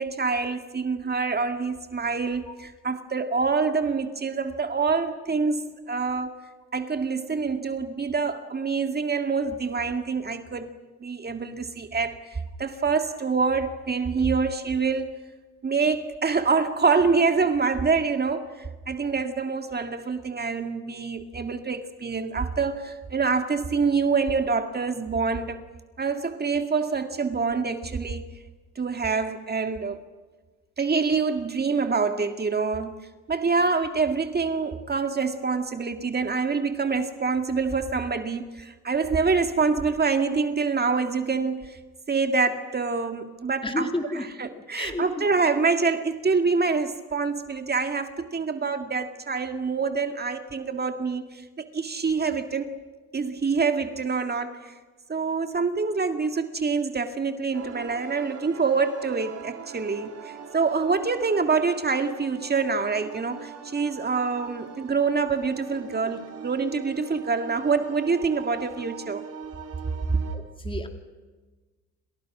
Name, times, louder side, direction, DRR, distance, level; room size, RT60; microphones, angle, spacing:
voice 1, 0.0-6.3 6.7-10.7 11.0-15.2 15.6-25.6 26.0-28.3 28.8-30.0 30.8-33.0 33.3-41.8 42.1-52.8 53.1-54.7 55.1-69.2, right 4 dB, 30° right, 2.1 m, -26 dB
voice 2, 43.6-44.3 44.5-45.3 70.3-70.9, left 2 dB, 15° left, 3.3 m, -32 dB
sound 1, 57.5-70.4, right 6 dB, 55° right, 4.1 m, -41 dB
29.5 x 26.5 x 6.2 m
cardioid pair, 90°, 30 cm